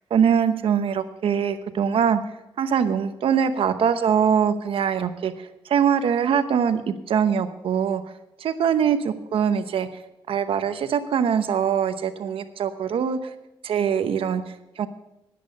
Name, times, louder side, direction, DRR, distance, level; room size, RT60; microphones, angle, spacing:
voice 1, 0.1-2.2 2.6-8.0 8.4-9.9 10.3-13.3 13.6-14.9, right 7 dB, 80° right, 10 dB, 0.9 m, -23 dB
10.5 x 10.5 x 5.4 m, 0.91 s
cardioid pair, 90°, 9 cm